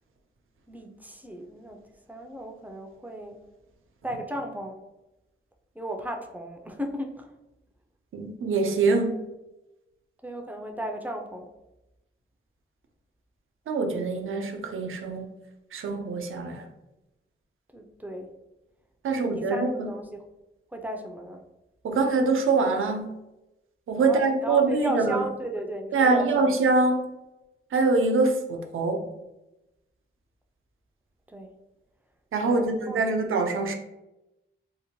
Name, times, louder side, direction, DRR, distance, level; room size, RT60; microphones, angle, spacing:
voice 1, 0.7-1.8 2.1-3.4 4.0-4.8 5.8-7.3 10.2-11.5 17.7-18.3 19.1-20.2 20.7-21.4 24.0-26.6 31.3-31.5 32.4-33.2, equal, 10° right, 2 dB, 0.3 m, -35 dB
voice 2, 8.1-9.2 13.7-15.3 15.7-16.7 19.0-19.9 21.8-23.1 23.9-25.2 25.9-27.1 27.7-29.0 32.3-33.7, right 3 dB, 80° right, 4 dB, 0.4 m, -24 dB
2.7 x 2.1 x 2.9 m, 0.97 s
wide cardioid pair, 105°, 21 cm